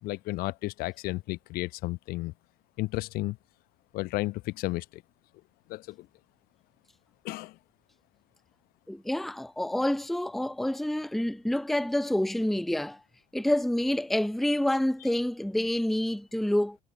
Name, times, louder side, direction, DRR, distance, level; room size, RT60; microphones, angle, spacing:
voice 1, 0.0-2.3 2.8-3.4 3.9-5.0 5.7-6.1 7.2-7.6, left 20 dB, 45° left, 0.9 m, -33 dB
voice 2, 8.9-13.0 13.3-16.8, left 1 dB, ahead, 0.8 m, -28 dB
figure-of-eight pair, 70°, 20 cm